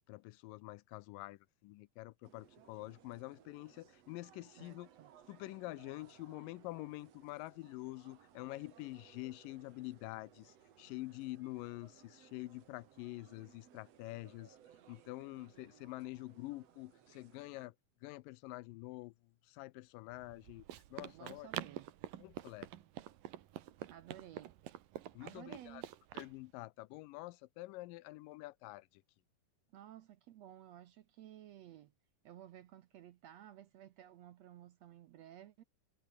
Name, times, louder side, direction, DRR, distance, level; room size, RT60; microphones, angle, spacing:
voice 1, 0.1-4.9 5.3-14.6 14.9-17.7 18.0-19.1 19.5-20.6 20.9-21.5 22.2-22.7 25.2-25.8 26.1-29.0, left 20 dB, 85° left, 2.3 m, -47 dB
sound 1, 2.2-17.7, right 9 dB, 55° right, 2.5 m, -63 dB
voice 2, 4.6-5.1 21.1-21.9 23.9-24.6 25.2-25.9 29.7-31.9 32.2-35.6, right 12 dB, 70° right, 1.7 m, -55 dB
Run, 20.1-26.3, right 13 dB, 90° right, 3.0 m, -47 dB
omnidirectional pair, 3.9 m